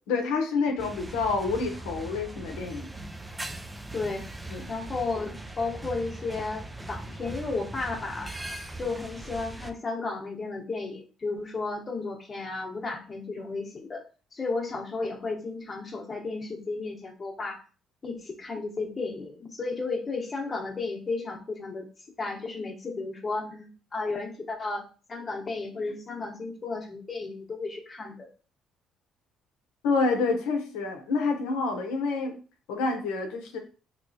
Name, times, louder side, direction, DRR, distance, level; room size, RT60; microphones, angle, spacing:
voice 1, 0.1-2.9 4.5-4.7 29.8-32.3 32.7-33.6, left 4 dB, 90° left, 3 dB, 0.7 m, -28 dB
sound 1, 0.8-9.7, right 2 dB, 10° right, 0.4 m, -40 dB
voice 2, 3.9-4.3 4.7-8.3 8.8-14.0 14.3-17.6 18.0-21.9 22.2-28.3, left 3 dB, 35° left, 0 dB, 1.0 m, -33 dB
3.0 x 3.0 x 2.7 m, 0.36 s
supercardioid pair, 80°, 0 cm